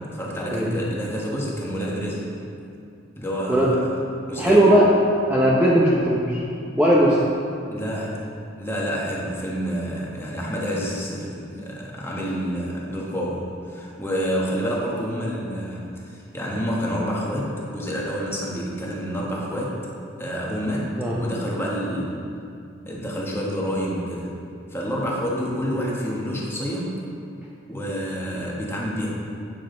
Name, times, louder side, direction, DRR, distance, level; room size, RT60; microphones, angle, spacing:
voice 1, 0.0-2.3 3.2-3.8 4.3-4.6 7.7-8.2 8.6-19.8 20.2-22.2 22.9-24.3 24.7-27.0 27.7-29.1, equal, 15° left, -4 dB, 1.3 m, -28 dB
voice 2, 4.4-4.9 5.3-6.4 6.8-7.2 21.0-21.2, right 1 dB, 10° right, -6 dB, 0.8 m, -17 dB
8.9 x 7.2 x 3.8 m, 2.5 s
head